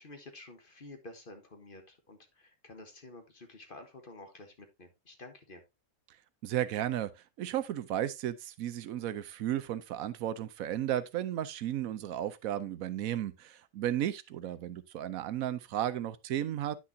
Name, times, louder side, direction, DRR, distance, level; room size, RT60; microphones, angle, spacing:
voice 1, 0.0-5.6, left 2 dB, 40° left, 1.3 m, -50 dB
voice 2, 6.4-7.1 7.4-16.8, right 11 dB, 80° right, 1.1 m, -34 dB
9.6 x 6.2 x 2.7 m
omnidirectional pair, 1.5 m